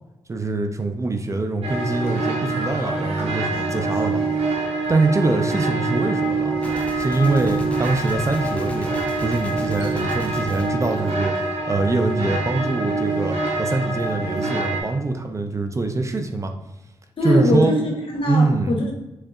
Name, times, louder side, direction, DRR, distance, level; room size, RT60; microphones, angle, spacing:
voice 1, 0.3-4.2 4.9-6.5 7.0-9.0 9.2-16.5 17.2-17.7 18.2-18.8, right 3 dB, 30° right, 6 dB, 0.4 m, -23 dB
sound 1, 1.6-14.8, right 3 dB, 85° right, 0.8 m, -25 dB
Gunshot gunfire, 6.6-11.8, equal, 10° left, 0.7 m, -38 dB
voice 2, 17.2-18.9, left 1 dB, 60° left, 0 dB, 1.0 m, -21 dB
3.8 x 3.2 x 2.4 m, 0.98 s
cardioid pair, 60°, 10 cm